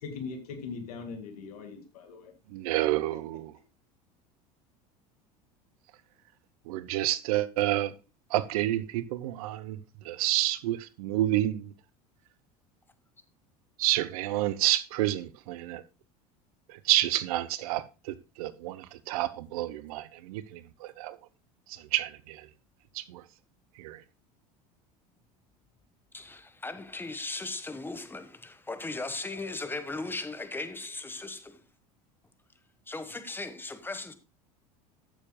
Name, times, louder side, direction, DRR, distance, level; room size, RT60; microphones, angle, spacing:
voice 1, 0.0-2.3, left 4 dB, 80° left, 2.2 m, -40 dB
voice 2, 2.5-3.5 6.7-7.9 8.3-9.8 10.0-11.7 13.8-15.8 16.7-21.2 21.7-22.5 22.9-23.2 23.8-24.0, right 15 dB, 70° right, 0.8 m, -29 dB
voice 3, 26.1-31.6 32.9-34.1, left 3 dB, 10° left, 1.4 m, -37 dB
14.0 x 7.2 x 2.3 m
hypercardioid pair, 85°, 19 cm